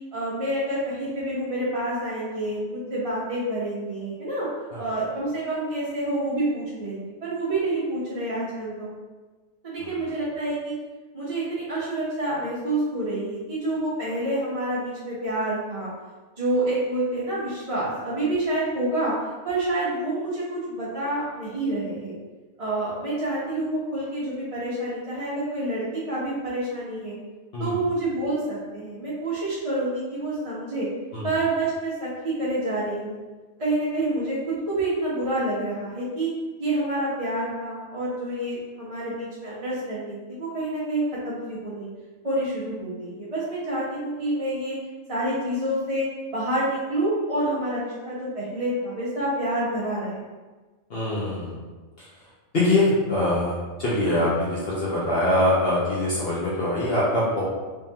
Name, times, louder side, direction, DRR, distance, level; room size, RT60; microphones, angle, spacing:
voice 1, 0.1-4.5 4.8-8.9 9.6-10.7 11.1-15.9 16.4-19.1 19.4-22.1 22.6-27.1 27.6-30.9 31.2-33.2 33.6-34.4 34.7-36.3 36.6-41.9 42.2-44.7 45.1-46.0 46.3-50.2, right 1 dB, 30° right, -9 dB, 0.8 m, -28 dB
voice 2, 50.9-51.6 52.0-52.1 52.5-57.4, left 1 dB, 55° left, -7 dB, 1.0 m, -23 dB
3.6 x 3.2 x 2.8 m, 1.3 s
omnidirectional pair, 1.3 m